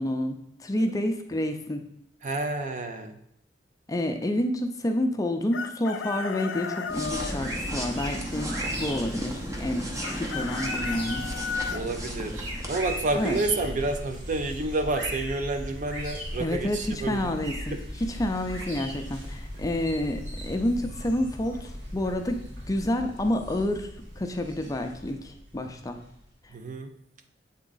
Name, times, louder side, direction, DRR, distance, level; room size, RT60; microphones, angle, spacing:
voice 1, 0.0-1.8 3.9-11.3 13.1-13.4 16.4-23.9 24.2-26.0, left 1 dB, 20° left, 5 dB, 0.5 m, -29 dB
voice 2, 2.2-3.2 11.7-17.3 17.7-17.8 26.5-26.9, right 2 dB, 45° right, 7 dB, 0.5 m, -29 dB
Chicken rooster, 5.5-7.4 10.0-11.8, left 6 dB, 85° left, 0.4 m, -34 dB
sound 1, 6.8-26.3, equal, 85° right, 1.8 m, -37 dB
sound 2, 6.9-13.4, equal, 15° right, 0.8 m, -36 dB
7.9 x 3.6 x 3.9 m, 0.78 s
head